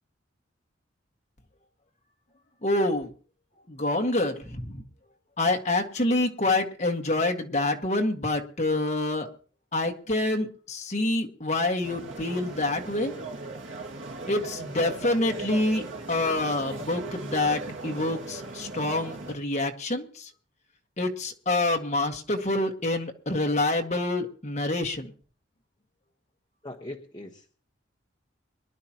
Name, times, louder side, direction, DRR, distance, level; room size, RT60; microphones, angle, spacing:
voice 1, 2.6-3.1 3.7-4.8 5.4-9.3 9.7-13.1 14.3-20.3 21.0-25.1, left 2 dB, 35° left, 3 dB, 1.7 m, -27 dB
sound 1, 11.8-19.3, right 2 dB, 80° right, 1.8 m, -38 dB
voice 2, 26.6-27.5, left 1 dB, 20° left, 1 dB, 1.2 m, -41 dB
24.0 x 11.5 x 2.9 m, 0.41 s
head